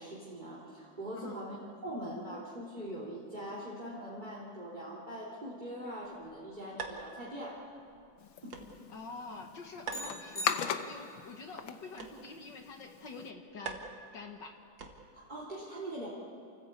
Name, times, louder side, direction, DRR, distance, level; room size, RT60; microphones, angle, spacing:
voice 1, 0.0-1.5 1.8-7.7 8.4-8.6 15.1-16.1, right 1 dB, 25° right, -5 dB, 3.2 m, -42 dB
sound 1, 6.0-15.3, right 5 dB, 75° right, 2.5 m, -48 dB
sound 2, 8.2-13.3, left 8 dB, 85° left, 1.7 m, -39 dB
voice 2, 8.9-13.8 14.1-14.6, left 3 dB, 65° left, 3 dB, 2.1 m, -46 dB
sound 3, 9.9-11.3, equal, 30° left, 1.6 m, -43 dB
29.5 x 14.5 x 8.3 m, 2.5 s
omnidirectional pair, 2.1 m